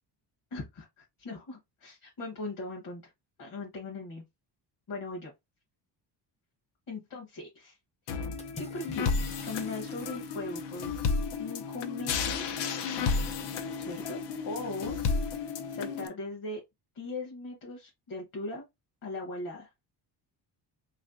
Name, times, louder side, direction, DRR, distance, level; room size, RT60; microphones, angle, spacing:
voice 1, 0.5-3.1 3.4-4.2 4.9-5.3 6.9-7.8 8.6-10.9 11.4-12.7 13.8-16.6 16.9-18.7 19.0-19.7, left 2 dB, 50° left, 1.3 m, -39 dB
sound 1, 8.1-16.1, left 5 dB, 75° left, 0.7 m, -32 dB
Water / Splash splatter, 8.4-10.8, left 2 dB, 15° left, 0.5 m, -50 dB
3.5 x 3.2 x 2.5 m
cardioid pair, 165°, 42 cm